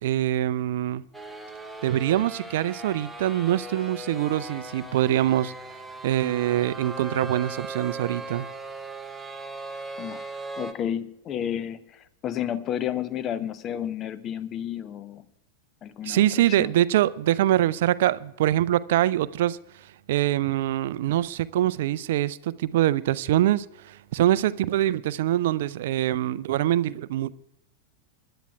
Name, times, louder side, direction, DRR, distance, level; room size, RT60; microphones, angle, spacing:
voice 1, 0.0-1.0 1.8-5.5 6.0-8.5 16.0-19.6 20.1-27.3, right 13 dB, 55° right, 0.4 m, -24 dB
sound 1, 1.1-10.7, right 2 dB, 5° right, 0.9 m, -38 dB
voice 2, 10.6-15.2 15.8-16.7, left 10 dB, 30° left, 0.7 m, -31 dB
25.0 x 11.0 x 2.3 m
figure-of-eight pair, 90°, 0 cm